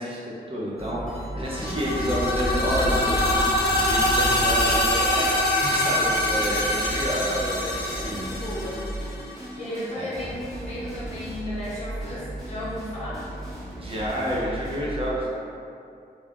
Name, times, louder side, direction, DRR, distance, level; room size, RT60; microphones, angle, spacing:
voice 1, 0.0-3.6 3.8-8.2 9.9-10.1 13.8-15.4, equal, 35° right, -6 dB, 0.4 m, -29 dB
sound 1, 0.8-5.3 5.6-5.7 6.0-15.2, right 1 dB, ahead, 0.7 m, -36 dB
voice 2, 1.3-1.8 7.2-7.4 7.9-8.9 9.5-13.2, left 1 dB, 45° left, -9 dB, 0.9 m, -35 dB
sound 2, 1.5-9.3, left 1 dB, 80° left, 0.4 m, -24 dB
2.3 x 2.1 x 3.6 m, 2.4 s
wide cardioid pair, 145°, 16 cm